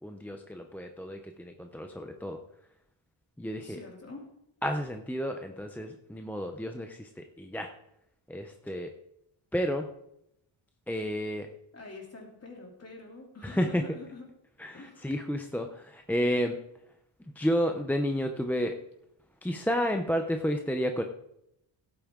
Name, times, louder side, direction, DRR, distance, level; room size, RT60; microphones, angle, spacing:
voice 1, 0.0-2.4 3.4-3.8 4.6-7.7 8.3-8.9 9.5-9.9 10.9-11.5 13.4-13.8 14.6-16.6 17.4-18.8 19.4-21.0, equal, 5° left, 4 dB, 0.5 m, -31 dB
voice 2, 3.6-4.3 11.7-14.3 14.7-15.1, left 3 dB, 30° left, 0 dB, 3.0 m, -46 dB
16.5 x 8.9 x 3.7 m, 0.79 s
wide cardioid pair, 165°, 49 cm